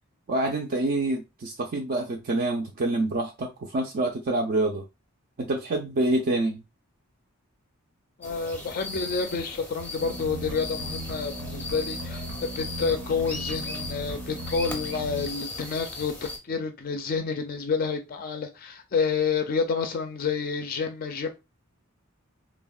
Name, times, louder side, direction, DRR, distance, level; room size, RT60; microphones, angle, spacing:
voice 1, 0.3-4.8 5.4-6.6, right 2 dB, 45° right, 0.4 m, -27 dB
voice 2, 8.2-16.1 16.5-21.3, left 5 dB, 40° left, 0.4 m, -29 dB
sound 1, 8.2-16.4, left 2 dB, 5° left, 0.7 m, -38 dB
sound 2, 10.0-15.3, right 1 dB, 80° right, 0.7 m, -37 dB
3.4 x 2.1 x 2.3 m
head